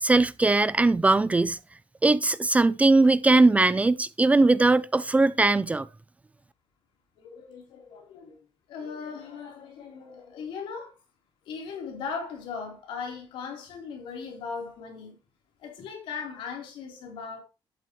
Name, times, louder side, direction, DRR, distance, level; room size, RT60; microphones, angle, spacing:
voice 1, 0.0-1.6 2.0-5.9, right 3 dB, 15° right, 0.5 m, -20 dB
voice 2, 7.2-8.4 8.7-11.0 11.5-15.2 15.6-17.4, left 5 dB, 85° left, 3.7 m, -38 dB
12.0 x 8.0 x 3.1 m
cardioid pair, 120°, 9 cm